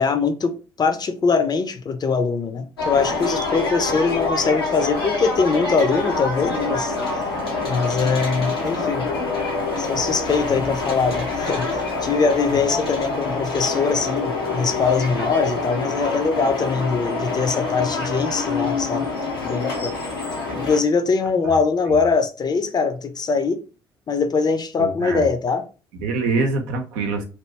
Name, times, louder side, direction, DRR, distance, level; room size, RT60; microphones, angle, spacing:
voice 1, 0.0-6.9 7.7-9.1 9.8-19.1 19.4-20.0 20.6-23.6 24.1-25.6, left 4 dB, 35° left, 0.6 m, -22 dB
sound 1, 2.8-20.8, left 3 dB, 85° left, 0.7 m, -26 dB
voice 2, 24.8-25.2 25.9-27.2, right 3 dB, 70° right, 0.7 m, -24 dB
3.0 x 2.6 x 3.2 m
figure-of-eight pair, 50°, 12 cm